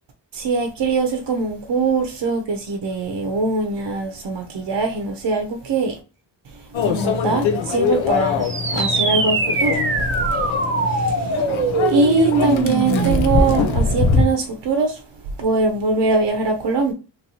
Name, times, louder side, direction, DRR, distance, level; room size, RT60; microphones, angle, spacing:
voice 1, 0.3-6.0 6.5-8.4 8.7-10.3 10.8-16.9, right 4 dB, 60° right, 0.7 m, -22 dB
Microwave oven, 6.7-14.2, left 4 dB, 80° left, 0.7 m, -22 dB
sound 1, 8.4-13.4, right 3 dB, 25° right, 0.8 m, -22 dB
2.9 x 2.9 x 2.7 m
cardioid pair, 70°, 46 cm